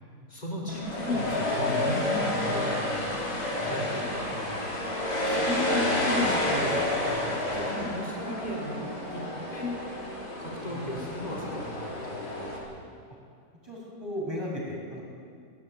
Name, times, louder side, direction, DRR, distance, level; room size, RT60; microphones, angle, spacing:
voice 1, 0.3-4.9 5.2-8.8 9.1-9.2 9.5-9.7 10.4-12.8, left 1 dB, 25° left, -2 dB, 5.6 m, -35 dB
sound 1, 0.7-12.6, left 1 dB, 65° left, 5.8 m, -30 dB
voice 2, 13.6-15.0, equal, 15° right, -3 dB, 7.1 m, -35 dB
21.5 x 19.0 x 9.3 m, 2.2 s
omnidirectional pair, 1.8 m